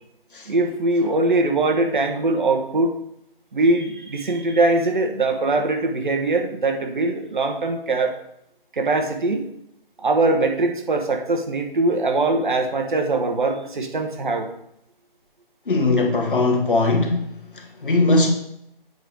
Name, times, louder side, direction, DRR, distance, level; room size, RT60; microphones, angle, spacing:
voice 1, 0.5-2.9 3.5-8.1 8.7-9.5 10.0-14.5, right 2 dB, 55° right, 3 dB, 1.3 m, -21 dB
voice 2, 15.7-18.3, left 2 dB, 60° left, 2 dB, 1.8 m, -20 dB
8.0 x 5.3 x 4.6 m, 0.76 s
figure-of-eight pair, 150°, 30 cm